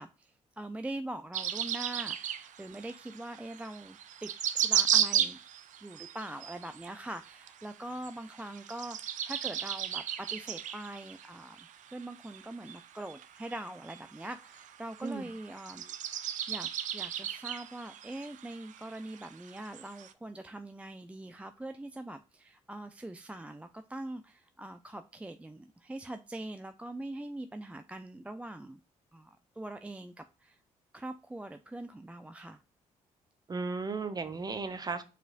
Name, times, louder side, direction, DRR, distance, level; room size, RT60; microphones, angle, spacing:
voice 1, 0.0-4.3 4.5-5.4 5.8-28.8 29.1-30.6 30.9-32.6, right 1 dB, 10° right, 8 dB, 0.4 m, -43 dB
sound 1, 1.3-20.1, right 10 dB, 70° right, 0.5 m, -35 dB
voice 2, 33.5-35.0, right 4 dB, 30° right, 11 dB, 0.8 m, -35 dB
4.8 x 4.3 x 2.5 m, 0.32 s
cardioid pair, 85°, 14 cm